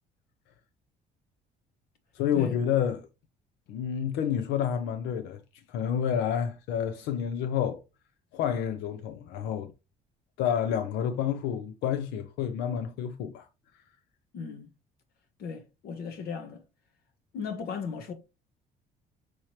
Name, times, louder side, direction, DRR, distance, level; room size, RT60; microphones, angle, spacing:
voice 1, 2.1-3.1 3.7-5.4 5.7-7.8 8.3-9.7 10.4-13.5, left 8 dB, 90° left, 0.6 m, -29 dB
voice 2, 14.3-14.7 15.4-16.6 17.3-18.1, left 6 dB, 65° left, 0.9 m, -36 dB
6.2 x 2.9 x 3.0 m
cardioid pair, 110°, 17 cm